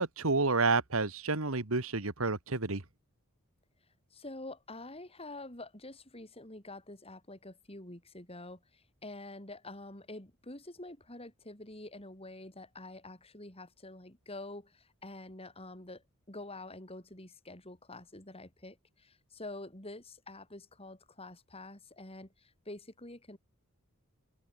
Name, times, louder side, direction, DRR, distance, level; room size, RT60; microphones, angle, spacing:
voice 1, 0.0-2.8, right 3 dB, 70° right, 1.9 m, -29 dB
voice 2, 4.1-23.4, left 2 dB, 25° left, 5.9 m, -47 dB
open air
head